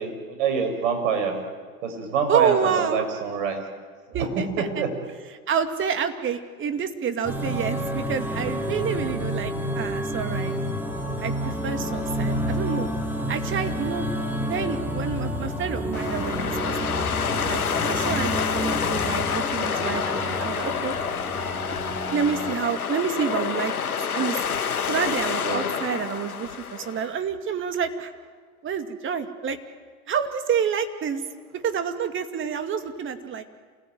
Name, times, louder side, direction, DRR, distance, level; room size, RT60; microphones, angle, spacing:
voice 1, 0.0-1.4 1.8-3.6 4.1-4.9 25.4-25.6, right 6 dB, 60° right, 5 dB, 7.0 m, -26 dB
voice 2, 2.3-3.1 4.1-4.8 5.5-10.6 11.2-12.9 13.3-14.1 14.4-16.4 16.6-21.0 22.1-23.7 24.1-24.6 24.9-28.1 28.6-29.6 30.1-31.2 31.5-33.4, right 7 dB, 30° right, 8 dB, 2.4 m, -28 dB
sound 1, 7.2-22.5, equal, 5° right, 3.5 m, -29 dB
sound 2, 15.9-27.1, left 7 dB, 90° left, 1.5 m, -28 dB
28.5 x 18.5 x 9.5 m, 1.6 s
hypercardioid pair, 95°, 43 cm